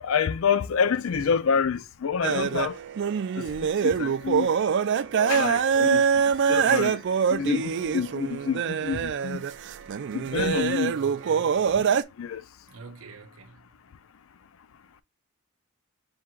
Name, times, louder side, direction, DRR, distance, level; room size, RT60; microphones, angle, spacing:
voice 1, 0.0-2.8 3.4-3.5 3.8-4.5 5.1-6.0 6.5-7.0 7.3-9.4 10.1-11.0 12.2-12.4, left 6 dB, 70° left, 0.4 m, -27 dB
sound 1, 2.2-12.0, right 7 dB, 55° right, 0.3 m, -24 dB
voice 2, 10.9-11.6 12.7-13.6, right 4 dB, 75° right, 0.7 m, -45 dB
4.4 x 3.6 x 2.4 m
head